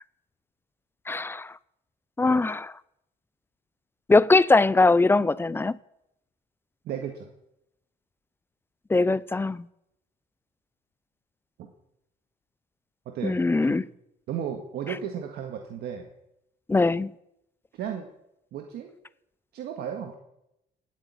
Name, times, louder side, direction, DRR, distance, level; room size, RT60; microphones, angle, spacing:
voice 1, 1.1-1.5 2.2-2.7 4.1-5.8 8.9-9.7 13.2-13.8 16.7-17.1, left 3 dB, 15° left, 0.5 m, -21 dB
voice 2, 6.8-7.3 11.6-11.7 13.0-13.4 13.7-13.8 14.3-16.1 17.7-18.1 18.5-18.9 19.5-20.1, right 8 dB, 70° right, 1.8 m, -34 dB
18.0 x 8.0 x 8.8 m
cardioid pair, 110°, 17 cm